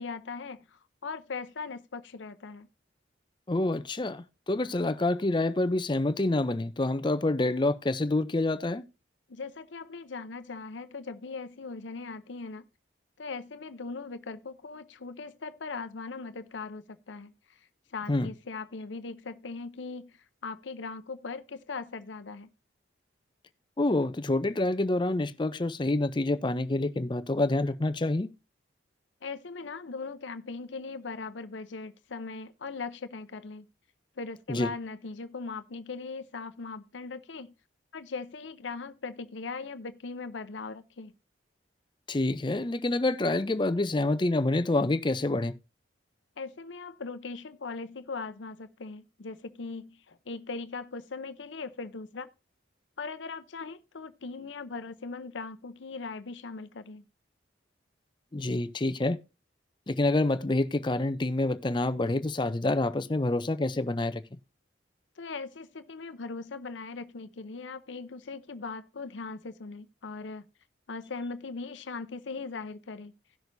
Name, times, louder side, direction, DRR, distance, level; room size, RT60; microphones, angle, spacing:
voice 1, 0.0-2.7 9.3-12.7 13.2-17.3 17.9-22.5 29.2-33.7 34.2-37.5 37.9-41.1 46.4-52.3 53.0-57.0 65.2-70.4 70.9-73.1, left 4 dB, 75° left, 0.7 m, -39 dB
voice 2, 3.5-8.8 18.1-18.3 23.8-28.3 34.5-34.7 42.1-45.6 58.3-59.2 59.9-64.2, left 2 dB, 25° left, 0.5 m, -27 dB
17.5 x 6.3 x 2.6 m
head